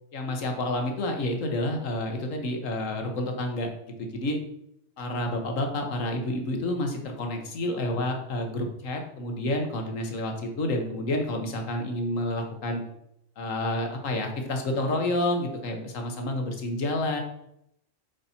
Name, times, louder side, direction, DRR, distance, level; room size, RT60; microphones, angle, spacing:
voice 1, 0.1-4.4 5.0-12.8 13.4-17.2, left 1 dB, 75° left, 3 dB, 1.6 m, -29 dB
8.5 x 4.2 x 4.4 m, 0.76 s
omnidirectional pair, 1.4 m